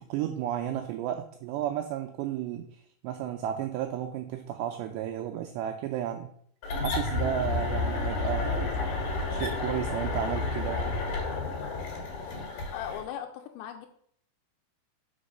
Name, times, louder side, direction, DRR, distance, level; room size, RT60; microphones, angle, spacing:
voice 1, 0.0-6.3 6.8-8.7 9.3-11.0, right 11 dB, 85° right, 6 dB, 2.5 m, -33 dB
sound 1, 6.6-13.1, left 3 dB, 55° left, 3.3 m, -31 dB
voice 2, 12.7-13.9, left 10 dB, 80° left, 5 dB, 2.7 m, -38 dB
6.1 x 5.1 x 6.4 m, 0.65 s
omnidirectional pair, 5.6 m